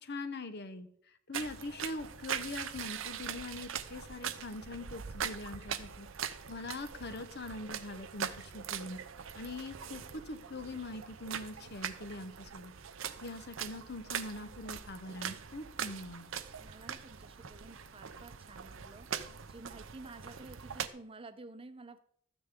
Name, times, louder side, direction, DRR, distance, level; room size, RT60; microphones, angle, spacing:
voice 1, 0.0-0.9 1.3-9.0 9.3-12.7 13.2-16.3, left 2 dB, 60° left, 10 dB, 1.0 m, -43 dB
sound 1, 1.3-20.9, right 8 dB, 85° right, 0.7 m, -42 dB
voice 2, 16.6-22.0, right 2 dB, 30° right, 10 dB, 0.8 m, -51 dB
13.0 x 9.5 x 3.7 m, 0.65 s
head